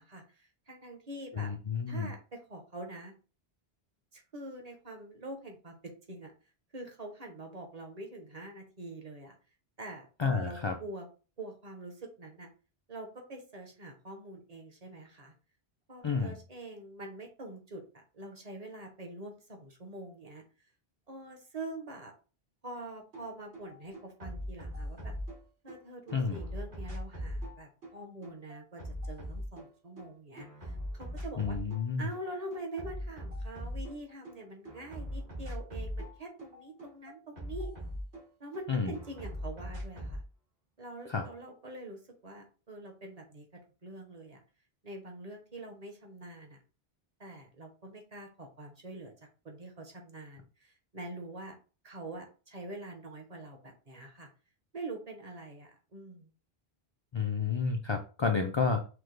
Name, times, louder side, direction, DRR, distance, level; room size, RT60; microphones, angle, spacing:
voice 1, 0.0-1.5 1.9-3.1 4.1-6.3 6.7-9.4 9.8-11.1 11.4-12.5 12.9-15.3 15.9-20.4 21.1-22.1 22.6-25.1 25.6-31.6 32.0-37.7 38.4-40.2 40.8-44.4 44.8-46.6 47.2-49.1 49.4-51.5 51.8-54.3 54.7-56.3, right 2 dB, 40° right, 3 dB, 0.9 m, -45 dB
voice 2, 1.4-2.1 10.2-10.7 16.0-16.3 26.1-26.4 31.4-32.1 38.7-38.9 41.1-41.2 57.1-58.9, left 5 dB, 50° left, 3 dB, 0.3 m, -30 dB
sound 1, 23.1-23.3 23.5-25.7 26.1-30.1 30.4-31.8 32.1-34.3 34.6-38.6 38.9-40.2, equal, 80° right, 2.7 m, -40 dB
5.9 x 2.1 x 3.2 m, 0.35 s
omnidirectional pair, 1.1 m